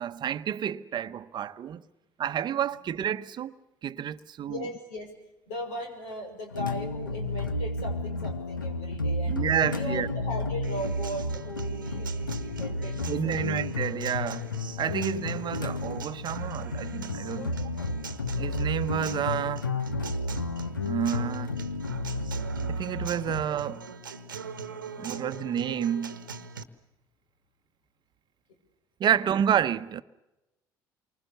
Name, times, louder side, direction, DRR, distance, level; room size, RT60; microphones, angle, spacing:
voice 1, 0.0-1.8 2.2-3.5 3.8-4.6 9.3-10.1 13.1-14.5 14.8-17.5 18.4-19.7 20.8-21.5 22.6-23.8 25.0-26.2 29.0-30.0, right 9 dB, 45° right, 1.0 m, -29 dB
voice 2, 4.5-5.1 5.5-9.4 9.7-13.4 17.3-18.1 23.9-24.0 24.7-25.5, left 1 dB, 65° left, 6.2 m, -39 dB
sound 1, 6.5-23.4, left 2 dB, 90° left, 0.9 m, -32 dB
Acoustic guitar, 10.6-26.6, right 5 dB, 85° right, 1.2 m, -42 dB
28.0 x 25.0 x 7.1 m
figure-of-eight pair, 55°, 11 cm